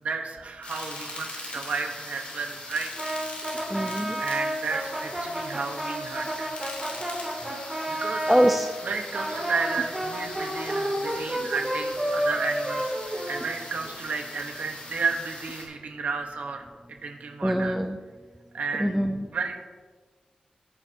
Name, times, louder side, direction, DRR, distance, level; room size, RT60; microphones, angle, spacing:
voice 1, 0.0-2.9 4.2-6.5 7.9-8.3 8.8-17.7 18.5-18.9 19.3-19.6, right 4 dB, 75° right, 3 dB, 1.2 m, -32 dB
sound 1, 0.6-15.6, left 2 dB, 55° left, 3.5 m, -40 dB
Brass instrument, 3.0-8.6 9.1-13.9, right 1 dB, 20° right, 2.5 m, -31 dB
voice 2, 3.7-4.2 8.3-8.7 11.4-11.5 17.4-18.0 18.8-19.3, equal, ahead, 6 dB, 0.4 m, -24 dB
16.5 x 9.7 x 2.9 m, 1.5 s
wide cardioid pair, 180°, 2 cm